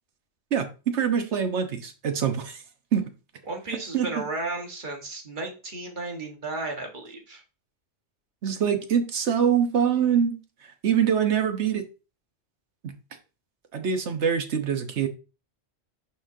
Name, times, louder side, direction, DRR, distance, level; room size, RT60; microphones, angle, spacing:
voice 1, 0.5-2.6 2.9-3.1 3.9-4.2 8.4-11.8 12.8-12.9 13.7-15.1, right 8 dB, 80° right, 7 dB, 1.3 m, -24 dB
voice 2, 3.5-7.4, right 2 dB, 45° right, 2 dB, 1.6 m, -34 dB
11.0 x 3.8 x 2.7 m, 0.33 s
omnidirectional pair, 1.2 m